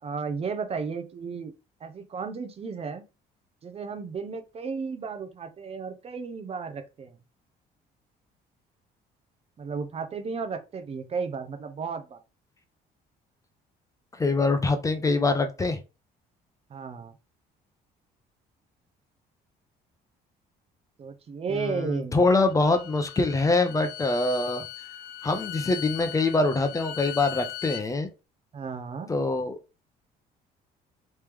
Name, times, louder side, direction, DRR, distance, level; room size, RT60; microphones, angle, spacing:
voice 1, 0.0-1.5 1.8-3.0 3.6-7.2 9.6-12.2 16.7-17.2 21.0-22.3 28.5-29.1, right 5 dB, 35° right, 0.6 m, -34 dB
voice 2, 14.2-15.8 21.5-24.6 25.2-28.1 29.1-29.6, left 3 dB, 20° left, 0.6 m, -24 dB
Bowed string instrument, 22.5-27.8, left 12 dB, 65° left, 0.4 m, -39 dB
3.3 x 3.0 x 3.4 m
cardioid pair, 110°, 17 cm